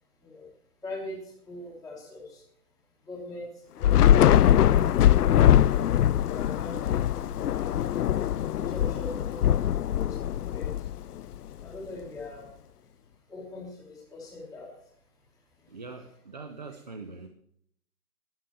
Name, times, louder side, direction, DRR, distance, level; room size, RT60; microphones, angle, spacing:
voice 1, 0.8-2.4 3.1-5.4 6.1-8.0 8.5-10.9 11.6-12.5 13.3-14.7 15.6-15.7, left 2 dB, ahead, -10 dB, 1.2 m, -42 dB
Thunder / Rain, 3.8-11.3, left 11 dB, 80° left, 0.6 m, -22 dB
voice 2, 15.7-17.3, right 4 dB, 30° right, 7 dB, 0.6 m, -42 dB
13.0 x 9.0 x 6.8 m, 0.68 s
hypercardioid pair, 165°, 45 cm